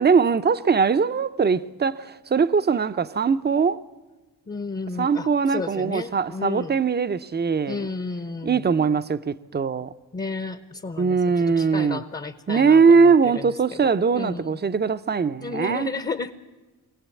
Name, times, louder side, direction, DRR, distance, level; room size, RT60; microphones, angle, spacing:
voice 1, 0.0-3.8 5.0-7.9 8.4-9.9 11.0-12.0 12.5-15.9, right 5 dB, 25° right, 0.6 m, -21 dB
voice 2, 4.5-6.8 7.6-8.7 10.1-14.6 15.4-16.3, left 3 dB, 25° left, 0.9 m, -33 dB
24.0 x 17.0 x 8.4 m
cardioid pair, 100°, 39 cm